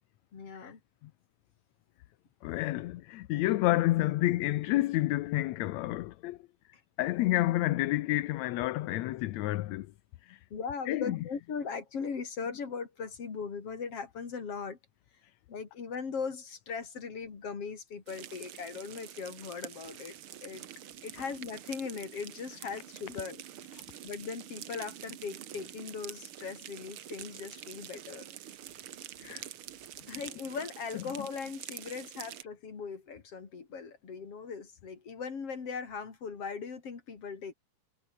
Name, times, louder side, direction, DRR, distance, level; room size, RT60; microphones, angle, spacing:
voice 1, 0.3-0.8 10.5-14.8 15.5-20.2 20.4-20.7 21.0-23.4 24.0-28.4 30.1-37.5, left 5 dB, 50° left, 4.1 m, -39 dB
voice 2, 2.4-6.4 7.0-9.9 10.2-10.4 10.9-11.2 23.7-23.8 29.2-29.4 30.9-31.0, left 16 dB, 75° left, 2.0 m, -29 dB
sound 1, 18.1-32.4, right 11 dB, 55° right, 1.7 m, -46 dB
omnidirectional pair, 3.4 m